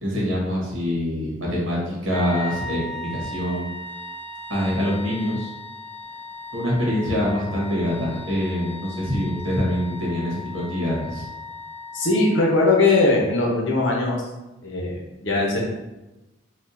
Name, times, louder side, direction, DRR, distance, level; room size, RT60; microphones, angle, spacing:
voice 1, 0.0-3.7 4.5-5.5 6.5-11.2, equal, 85° right, -4 dB, 1.3 m, -25 dB
Wind instrument woodwind instrument, 2.1-12.9, left 2 dB, 10° left, 0.3 m, -37 dB
voice 2, 11.9-14.2 14.6-15.6, left 3 dB, 70° left, -2 dB, 0.9 m, -20 dB
4.3 x 2.4 x 2.6 m, 1.0 s
head